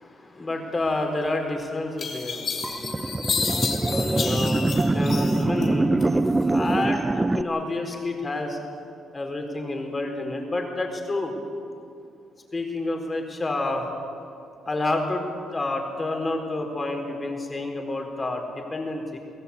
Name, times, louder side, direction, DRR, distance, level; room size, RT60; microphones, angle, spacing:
voice 1, 0.1-2.9 3.8-6.1 6.4-8.6 9.1-11.3 12.5-13.9 14.7-19.2, left 2 dB, 25° left, 3 dB, 4.3 m, -29 dB
sound 1, 1.3-1.4 2.0-5.7 6.0-6.8, left 5 dB, 55° left, 3.1 m, -30 dB
sound 2, 2.6-7.4, right 2 dB, 15° right, 0.6 m, -23 dB
24.0 x 16.0 x 8.5 m, 2.5 s
cardioid pair, 90°, 0 cm